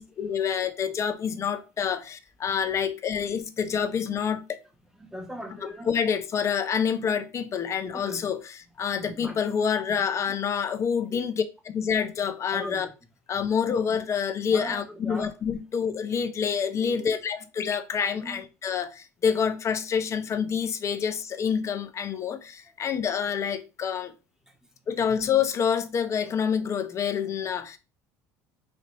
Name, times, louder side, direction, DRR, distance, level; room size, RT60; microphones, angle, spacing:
voice 1, 0.0-4.6 5.9-8.4 8.8-12.9 13.3-24.1 24.9-27.8, left 7 dB, 40° left, 0.6 m, -27 dB
voice 2, 4.9-5.9 7.0-7.1 7.8-8.3 8.9-9.4 9.7-10.0 11.1-11.3 12.5-12.9 14.5-15.3 16.7-17.2 18.1-18.4 24.5-24.6, equal, 5° right, 1.1 m, -40 dB
3.3 x 2.7 x 4.0 m
supercardioid pair, 85°, 8 cm